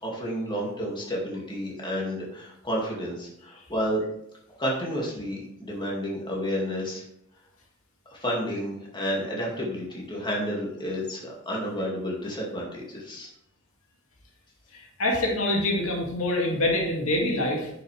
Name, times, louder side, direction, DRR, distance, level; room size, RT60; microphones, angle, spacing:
voice 1, 0.0-4.0 4.6-7.0 8.1-13.3, equal, 20° left, -3 dB, 2.3 m, -31 dB
voice 2, 14.7-17.7, left 1 dB, 70° left, -1 dB, 2.3 m, -25 dB
10.0 x 6.7 x 3.4 m, 0.77 s
head